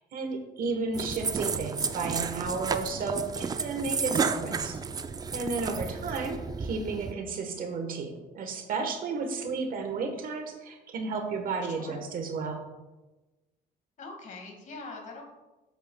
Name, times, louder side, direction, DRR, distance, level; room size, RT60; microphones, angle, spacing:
voice 1, 0.0-4.8 5.3-12.6, right 4 dB, 55° right, 5 dB, 1.2 m, -33 dB
sound 1, 0.9-7.1, right 5 dB, 25° right, 0.4 m, -32 dB
voice 2, 4.5-4.8 11.8-12.0 14.0-15.2, left 3 dB, 45° left, 2 dB, 1.8 m, -43 dB
7.9 x 7.7 x 2.2 m, 1.1 s
cardioid pair, 110°, 17 cm